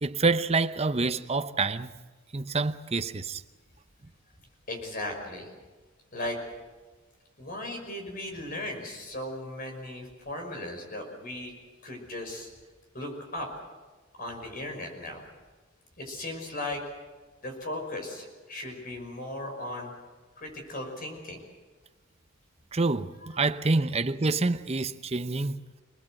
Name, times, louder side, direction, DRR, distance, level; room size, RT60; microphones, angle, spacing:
voice 1, 0.0-1.9 2.3-3.4 22.7-23.1 23.4-25.6, right 3 dB, 30° right, 0.7 m, -27 dB
voice 2, 4.7-5.5 6.1-6.4 7.4-11.5 11.8-12.5 12.9-13.6 14.2-15.2 16.0-16.8 17.4-19.9 20.4-21.4, left 1 dB, 45° left, 5.8 m, -37 dB
27.5 x 19.5 x 7.8 m
head